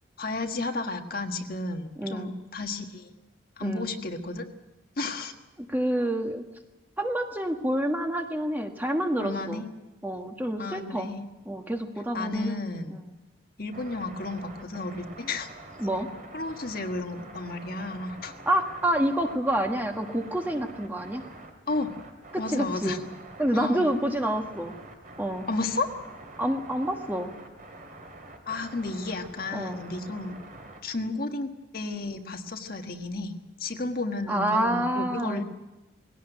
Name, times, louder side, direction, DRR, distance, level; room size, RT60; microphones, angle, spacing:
voice 1, 0.2-3.1 3.6-4.5 5.0-5.3 9.2-9.7 10.6-11.2 12.1-13.0 13.6-15.5 16.3-18.3 21.7-21.9 22.4-23.0 23.5-23.9 25.5-25.9 28.5-30.4 30.8-33.3 33.6-35.4, left 3 dB, 50° left, 5 dB, 1.6 m, -32 dB
voice 2, 2.0-2.3 3.6-3.9 5.6-6.4 7.0-9.6 10.0-11.1 11.4-12.6 15.8-16.1 18.4-21.2 22.3-23.0 23.4-24.7 25.2-25.4 26.4-27.3 29.5-29.8 34.3-35.4, right 1 dB, 10° right, 4 dB, 1.5 m, -28 dB
sound 1, 13.7-30.8, right 2 dB, 45° right, 3.1 m, -46 dB
20.5 x 17.0 x 9.2 m, 1.0 s
head